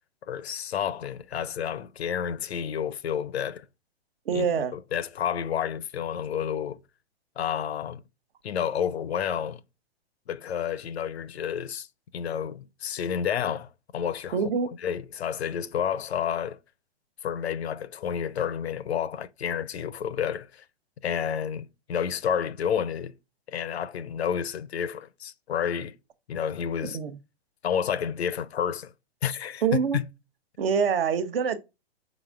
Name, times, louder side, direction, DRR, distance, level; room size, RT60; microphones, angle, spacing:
voice 1, 0.3-3.6 4.3-6.8 7.4-8.0 8.4-9.6 10.3-11.9 12.1-14.5 14.8-16.6 17.2-20.6 21.0-23.1 23.5-26.0 26.3-27.0 27.6-28.9 29.2-30.1, left 8 dB, 80° left, 0.5 m, -30 dB
voice 2, 4.3-4.7 14.3-14.7 26.9-27.1 29.6-30.0 30.6-31.6, right 6 dB, 65° right, 0.8 m, -25 dB
5.2 x 3.9 x 2.4 m
hypercardioid pair, 125°, 32 cm